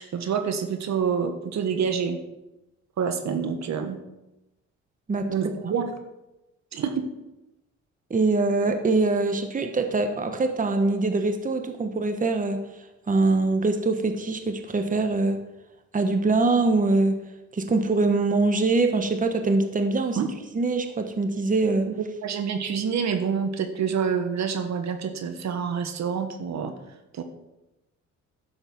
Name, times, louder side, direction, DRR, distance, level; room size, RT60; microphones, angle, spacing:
voice 1, 0.0-2.2 3.0-4.0 5.3-5.8 6.7-7.0 20.2-20.3 22.2-26.7 27.1-27.2, right 6 dB, 60° right, 7 dB, 1.4 m, -27 dB
voice 2, 8.1-12.6 13.1-15.4 15.9-17.2 17.5-20.2 20.5-21.9, right 3 dB, 25° right, 7 dB, 1.2 m, -23 dB
11.0 x 7.2 x 5.4 m, 0.96 s
cardioid pair, 90°, 30 cm